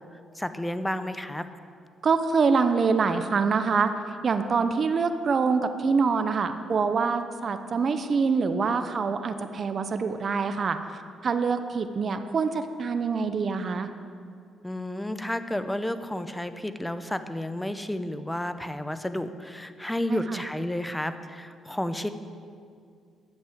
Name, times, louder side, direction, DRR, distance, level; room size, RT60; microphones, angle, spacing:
voice 1, 0.3-1.5 14.6-22.1, left 1 dB, 10° left, 11 dB, 0.7 m, -31 dB
voice 2, 2.0-3.9 4.2-10.8 11.2-13.9 20.1-20.4, right 5 dB, 45° right, 9 dB, 0.7 m, -25 dB
10.5 x 8.0 x 7.7 m, 2.3 s
cardioid pair, 90°, 0 cm